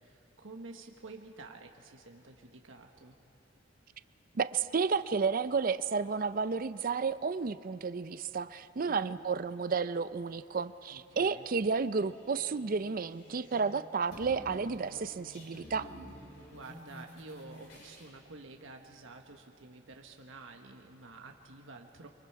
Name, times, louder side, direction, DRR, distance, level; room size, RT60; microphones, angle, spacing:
voice 1, 0.0-3.2 8.8-9.2 10.9-11.4 16.5-22.1, right 3 dB, 85° right, 3 dB, 1.2 m, -50 dB
voice 2, 4.3-15.9, right 5 dB, 45° right, 13 dB, 0.5 m, -32 dB
sound 1, 12.0-13.7 14.0-18.1, equal, 70° left, 7.3 m, -51 dB
29.5 x 24.0 x 4.7 m, 2.6 s
head